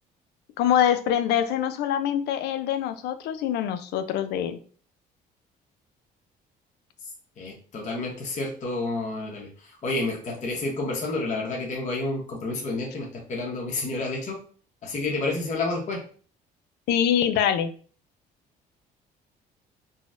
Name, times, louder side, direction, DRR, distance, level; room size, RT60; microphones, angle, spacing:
voice 1, 0.6-4.6 16.9-17.7, left 9 dB, 75° left, 10 dB, 0.4 m, -24 dB
voice 2, 7.4-14.4 14.8-16.0, left 2 dB, 45° left, -1 dB, 0.9 m, -30 dB
3.9 x 2.0 x 2.4 m, 0.42 s
cardioid pair, 110°, 17 cm